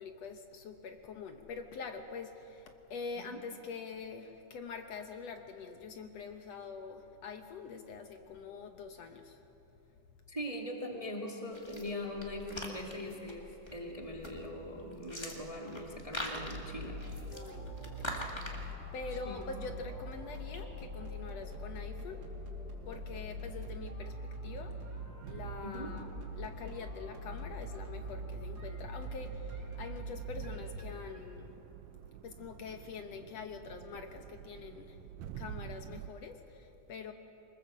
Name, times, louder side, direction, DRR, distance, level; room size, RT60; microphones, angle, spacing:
voice 1, 0.0-9.5 17.3-22.3 22.9-25.0 25.3-31.5 32.2-35.0 35.4-37.1, left 5 dB, 65° left, 5 dB, 2.0 m, -45 dB
voice 2, 10.3-17.0 19.2-19.4 25.6-25.9, left 1 dB, 15° right, -1 dB, 1.7 m, -41 dB
sound 1, 11.5-20.6, equal, 10° left, 1.6 m, -45 dB
sound 2, 16.4-31.3, equal, 40° right, 3.3 m, -43 dB
sound 3, 24.4-36.1, right 10 dB, 75° right, 2.0 m, -50 dB
24.0 x 20.5 x 7.4 m, 3.0 s
omnidirectional pair, 3.4 m